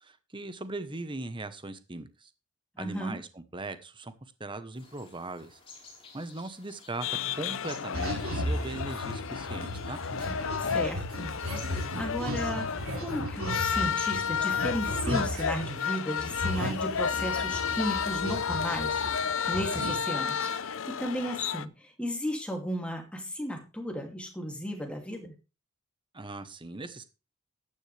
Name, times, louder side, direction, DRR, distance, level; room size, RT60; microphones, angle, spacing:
voice 1, 0.0-2.3 2.8-4.1 4.4-5.6 6.1-7.1 7.4-10.0 26.1-27.0, right 2 dB, 25° right, 1.0 m, -39 dB
voice 2, 2.8-3.2 10.6-11.3 12.0-19.0 19.5-25.3, equal, 5° left, 2.6 m, -34 dB
sound 1, 4.7-13.0, left 3 dB, 25° left, 4.2 m, -54 dB
sound 2, 7.0-21.6, left 7 dB, 65° left, 0.6 m, -32 dB
sound 3, 7.9-15.8 16.2-19.3 19.5-19.9, equal, 75° right, 3.3 m, -35 dB
13.5 x 9.7 x 3.4 m
head